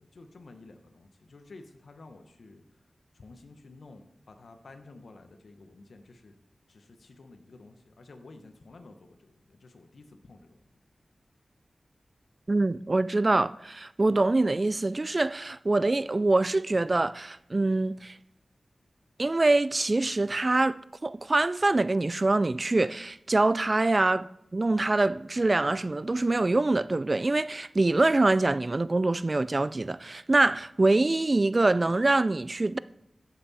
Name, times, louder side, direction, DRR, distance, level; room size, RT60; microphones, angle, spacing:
voice 1, 0.0-2.6 3.1-6.3 6.7-10.8, left 3 dB, 75° left, 1.1 m, -51 dB
voice 2, 12.5-18.2 19.2-32.8, right 2 dB, 40° right, 0.3 m, -25 dB
14.5 x 5.9 x 4.2 m
cardioid pair, 55°, 0 cm